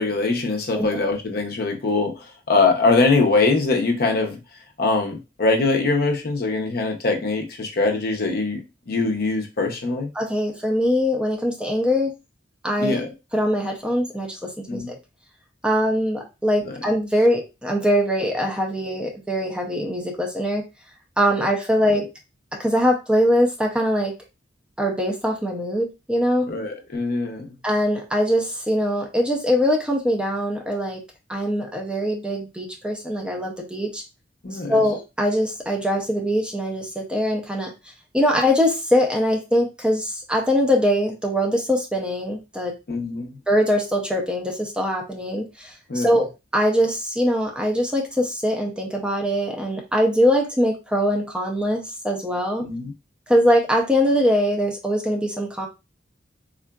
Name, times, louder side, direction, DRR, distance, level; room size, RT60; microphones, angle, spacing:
voice 1, 0.0-4.4 4.8-10.1 12.8-13.1 14.7-14.9 16.6-16.8 21.9-22.0 26.5-27.5 34.4-34.8 42.9-43.4 45.9-46.2 52.6-52.9, left 3 dB, 55° left, 0.6 m, -22 dB
voice 2, 10.1-12.1 12.6-13.0 13.3-14.9 15.6-20.6 21.2-22.1 22.6-24.1 24.8-26.5 27.6-31.0 31.3-34.0 34.5-37.7 38.1-42.7 43.5-46.2 46.5-52.6 53.3-55.7, equal, 5° right, 0.6 m, -22 dB
3.7 x 2.4 x 2.2 m
head